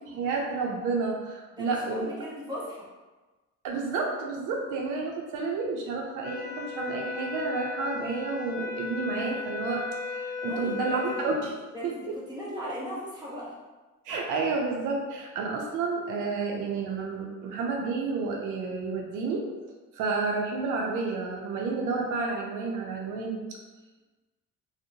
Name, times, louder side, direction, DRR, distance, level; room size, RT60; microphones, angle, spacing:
voice 1, 0.1-2.0 3.6-11.6 11.8-11.9 14.0-19.4 19.9-23.4, right 4 dB, 90° right, 0 dB, 0.5 m, -30 dB
voice 2, 1.5-2.9 10.5-11.2 11.7-13.5 21.6-21.8, equal, 15° right, -7 dB, 0.9 m, -38 dB
sound 1, 6.2-11.4, left 4 dB, 35° left, 0.7 m, -35 dB
2.6 x 2.1 x 2.6 m, 1.2 s
cardioid pair, 90°, 30 cm